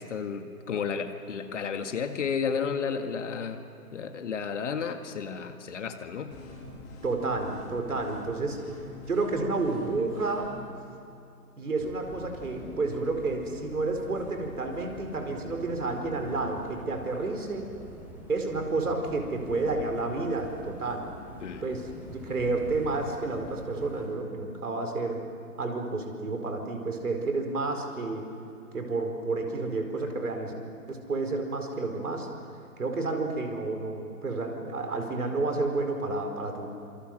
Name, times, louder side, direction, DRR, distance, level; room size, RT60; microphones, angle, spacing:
voice 1, 0.0-3.6 3.9-6.3 21.4-21.7, left 6 dB, 50° left, 7 dB, 2.0 m, -32 dB
sound 1, 6.3-10.7, left 2 dB, 20° left, 3.4 m, -45 dB
voice 2, 7.0-8.6 9.1-10.5 11.6-17.7 18.3-21.1 21.6-25.2 25.6-28.3 28.7-30.5 30.9-32.3 32.8-36.7, right 3 dB, 70° right, 4 dB, 4.8 m, -30 dB
sound 2, 11.8-24.1, equal, 5° right, 4.4 m, -46 dB
26.5 x 26.5 x 7.8 m, 2.7 s
figure-of-eight pair, 135°, 46 cm